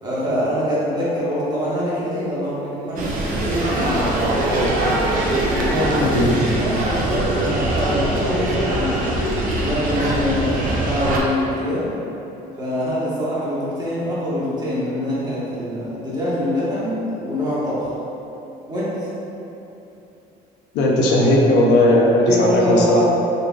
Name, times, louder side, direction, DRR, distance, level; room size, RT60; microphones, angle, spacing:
voice 1, 0.0-4.3 4.6-5.0 5.5-6.2 6.6-9.2 9.6-11.9 12.6-17.9 18.7-19.1 22.2-23.0, equal, 25° right, -9 dB, 1.2 m, -24 dB
sound 1, 3.0-11.2, right 1 dB, 55° right, 0.6 m, -22 dB
voice 2, 20.7-23.0, left 1 dB, 85° left, -3 dB, 0.6 m, -16 dB
3.9 x 3.2 x 2.3 m, 2.9 s
cardioid pair, 110°, 17 cm